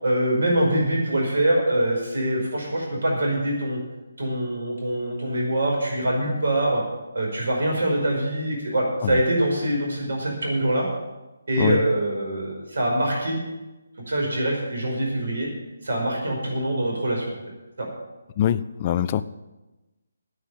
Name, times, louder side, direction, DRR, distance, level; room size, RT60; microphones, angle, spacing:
voice 1, 0.0-3.8 4.2-6.8 7.1-10.9 11.5-13.4 14.1-15.5 15.8-17.3 17.8-17.9, right 1 dB, 60° right, -1 dB, 5.1 m, -24 dB
voice 2, 18.4-19.2, left 10 dB, 30° left, 15 dB, 0.5 m, -23 dB
9.6 x 9.6 x 8.7 m, 1.1 s
figure-of-eight pair, 145°, 0 cm